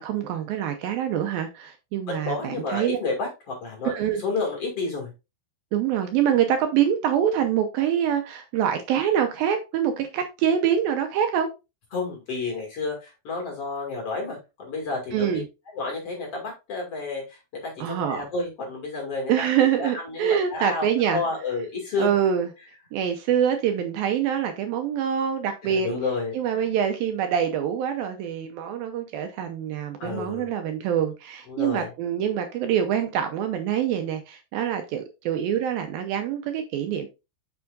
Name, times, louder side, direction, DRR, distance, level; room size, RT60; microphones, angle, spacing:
voice 1, 0.0-3.0 3.8-4.2 5.7-11.5 15.1-15.4 17.8-18.3 19.3-21.2 22.0-22.5 22.9-25.9 26.3-37.1, right 9 dB, 80° right, 2.4 m, -25 dB
voice 2, 2.1-5.1 11.9-15.4 15.7-19.5 19.8-22.1 25.6-26.6 30.0-30.5 31.5-31.9, left 3 dB, 40° left, 2.8 m, -31 dB
7.0 x 6.2 x 2.5 m
omnidirectional pair, 4.6 m